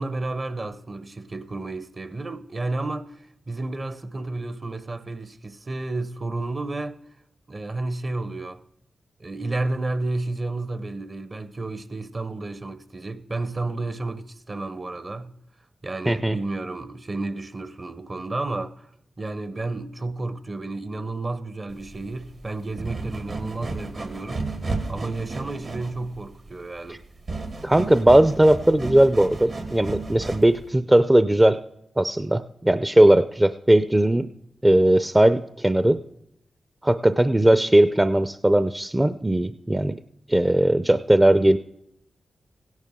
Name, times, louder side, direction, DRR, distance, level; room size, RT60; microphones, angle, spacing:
voice 1, 0.0-3.2 3.5-7.0 7.5-8.6 9.2-15.3 15.8-24.5 24.9-27.0, right 2 dB, 45° right, 0.9 m, -31 dB
voice 2, 16.1-16.4 26.9-27.0 27.6-31.6 32.0-34.3 34.6-36.0 36.8-40.0 40.3-41.6, right 1 dB, 20° right, 0.5 m, -18 dB
sound 1, 21.7-30.7, right 3 dB, 70° right, 2.2 m, -33 dB
16.0 x 10.5 x 3.7 m
supercardioid pair, 40°, 0 cm